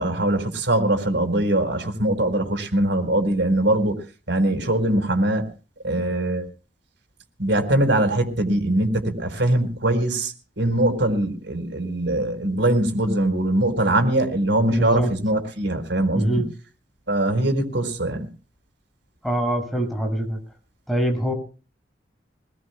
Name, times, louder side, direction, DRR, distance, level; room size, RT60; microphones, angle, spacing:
voice 1, 0.0-4.0 4.3-5.5 5.8-6.5 7.4-16.4 17.1-18.3, right 1 dB, 85° right, 6 dB, 4.7 m, -22 dB
voice 2, 14.7-15.1 16.1-16.5 19.2-20.4 20.9-21.3, right 1 dB, ahead, 1 dB, 6.7 m, -24 dB
25.0 x 20.5 x 2.3 m, 0.37 s
head